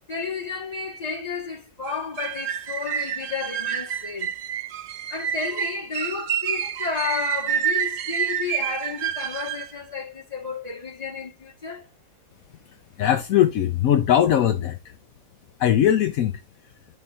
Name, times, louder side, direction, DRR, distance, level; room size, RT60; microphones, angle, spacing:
voice 1, 0.1-4.3 5.1-11.9, left 5 dB, 25° left, 2.0 m, -32 dB
sound 1, 1.9-9.7, right 9 dB, 60° right, 0.8 m, -28 dB
voice 2, 13.0-14.8 15.6-16.4, left 10 dB, 75° left, 1.1 m, -20 dB
11.0 x 4.3 x 2.6 m
omnidirectional pair, 1.5 m